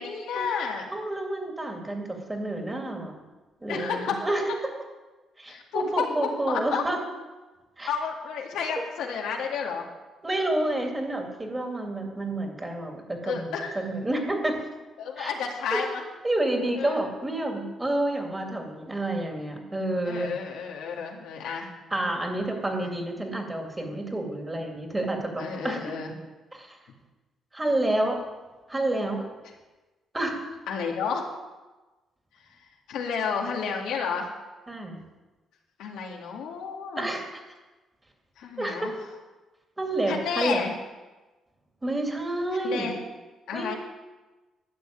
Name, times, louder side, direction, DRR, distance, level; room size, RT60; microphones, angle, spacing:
voice 1, 0.0-0.9 3.7-4.3 5.5-6.8 7.9-9.8 13.2-13.8 15.0-16.0 16.8-17.0 20.0-21.7 25.4-26.1 30.7-31.3 32.9-34.3 35.8-37.1 38.4-38.9 40.1-40.7 42.6-43.0 43.5-43.7, left 6 dB, 90° left, 0 dB, 2.1 m, -31 dB
voice 2, 0.9-3.2 3.6-4.4 5.4-7.0 7.8-7.9 10.2-14.6 15.2-15.4 16.2-20.3 21.9-25.8 26.5-26.8 27.5-28.2 28.7-29.3 30.1-30.5 34.7-35.0 37.0-37.3 38.6-38.9 39.8-40.7 41.8-43.0 43.5-43.7, right 1 dB, 15° right, 2 dB, 2.7 m, -29 dB
12.5 x 6.6 x 9.0 m, 1.2 s
cardioid pair, 90°, 0 cm